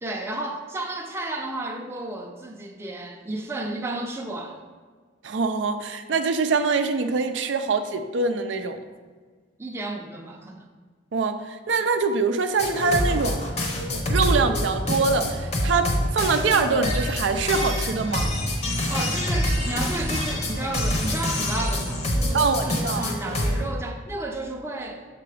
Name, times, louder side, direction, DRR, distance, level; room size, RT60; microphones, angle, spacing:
voice 1, 0.0-4.6 9.6-10.7 18.9-25.1, right 2 dB, 15° right, 1 dB, 0.6 m, -32 dB
voice 2, 5.2-8.8 11.1-13.4 14.1-18.3 22.3-23.0, right 4 dB, 75° right, 7 dB, 0.5 m, -24 dB
sound 1, 12.6-23.6, left 1 dB, 35° left, 0.8 m, -26 dB
6.7 x 3.9 x 4.9 m, 1.5 s
head